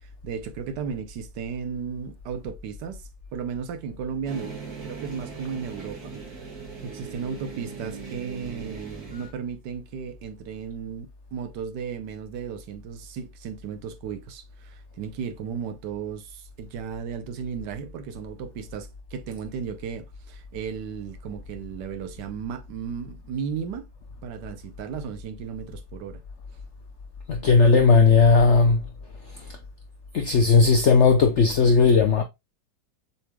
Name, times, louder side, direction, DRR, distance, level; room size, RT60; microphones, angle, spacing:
voice 1, 0.2-6.1 6.8-23.9 24.2-26.2, right 7 dB, 75° right, 1.3 m, -35 dB
sound 1, 4.2-9.3, right 5 dB, 55° right, 2.3 m, -39 dB
voice 2, 27.3-28.8 29.3-29.4 30.1-32.2, left 4 dB, 70° left, 0.6 m, -17 dB
7.0 x 3.3 x 2.2 m
omnidirectional pair, 1.9 m